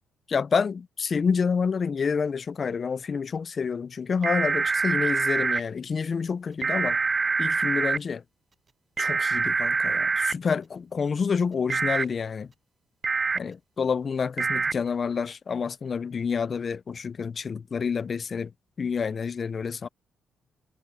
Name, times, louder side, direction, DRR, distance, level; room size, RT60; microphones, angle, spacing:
voice 1, 0.3-7.0 7.4-8.2 9.0-12.5 13.3-18.5 18.8-19.9, left 6 dB, 40° left, 0.6 m, -28 dB
sound 1, 4.2-5.6 6.6-8.0 9.0-10.3 11.7-12.1 13.0-13.4 14.4-14.7, right 4 dB, 35° right, 0.5 m, -25 dB
cardioid pair, 90°, 0 cm